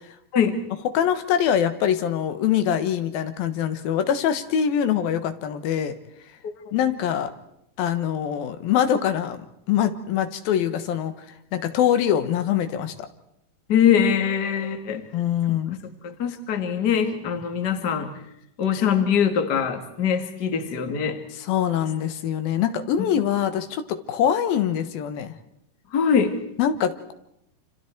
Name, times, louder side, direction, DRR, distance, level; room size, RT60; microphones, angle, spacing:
voice 1, 0.9-5.9 6.7-7.3 7.8-11.1 11.5-12.9 15.1-15.8 21.4-25.3 26.6-27.1, left 9 dB, 85° left, 9 dB, 3.1 m, -24 dB
voice 2, 13.7-15.0 16.0-18.1 18.6-21.2 25.9-26.4, left 7 dB, 35° left, 7 dB, 1.9 m, -22 dB
28.5 x 26.5 x 4.6 m, 0.78 s
omnidirectional pair, 4.1 m